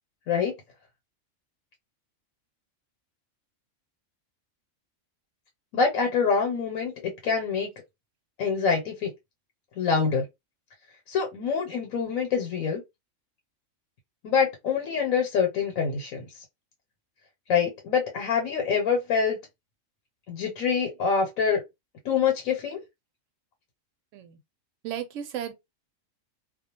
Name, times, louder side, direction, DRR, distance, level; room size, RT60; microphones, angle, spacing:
voice 1, 5.7-7.7 8.4-9.1 9.8-10.2 11.1-12.8 14.2-16.2 17.5-19.4 20.3-21.6 22.0-22.8, left 6 dB, 85° left, 1.1 m, -25 dB
voice 2, 24.8-25.5, right 10 dB, 75° right, 0.9 m, -34 dB
2.3 x 2.1 x 2.8 m
omnidirectional pair, 1.4 m